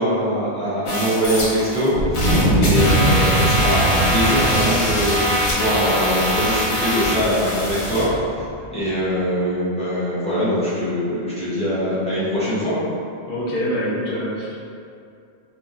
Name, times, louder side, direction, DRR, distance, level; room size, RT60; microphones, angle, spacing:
voice 1, 0.0-2.2 2.6-8.1 8.7-12.7, equal, 5° left, -13 dB, 0.8 m, -22 dB
sound 1, 0.9-1.9 2.1-8.1, equal, 80° left, 1.0 m, -23 dB
Wind, 1.9-8.5, right 1 dB, 75° right, 1.4 m, -22 dB
voice 2, 13.3-14.5, equal, 55° left, -7 dB, 0.8 m, -25 dB
2.7 x 2.7 x 2.5 m, 2.5 s
omnidirectional pair, 1.1 m